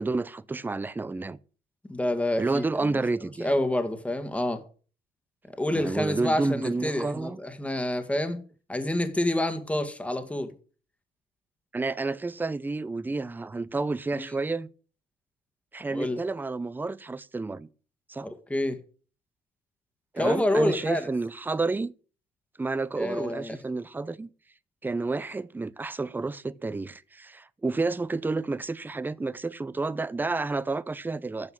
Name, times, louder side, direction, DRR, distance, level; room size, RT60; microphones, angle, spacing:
voice 1, 0.0-1.4 2.4-3.5 5.7-7.4 11.7-14.7 15.7-17.7 18.1-18.3 20.1-21.9 22.6-24.3 24.8-31.5, right 3 dB, 10° right, 0.6 m, -30 dB
voice 2, 1.9-2.9 3.2-4.7 5.5-8.4 8.7-10.5 14.1-14.2 15.9-16.2 18.2-18.8 20.2-21.1 22.9-23.6, left 1 dB, 10° left, 1.7 m, -28 dB
9.7 x 6.9 x 7.6 m
cardioid pair, 110°, 17 cm